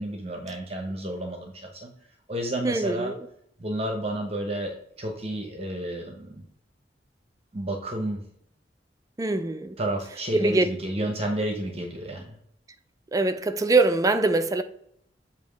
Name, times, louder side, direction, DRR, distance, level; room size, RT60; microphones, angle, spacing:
voice 1, 0.0-1.9 2.3-3.1 3.6-6.4 7.5-8.2 9.8-12.4, right 1 dB, 35° right, 0.9 m, -31 dB
voice 2, 2.6-3.2 9.2-9.8 10.3-10.6 13.1-14.6, right 3 dB, 20° right, 0.4 m, -23 dB
7.4 x 2.9 x 5.1 m
head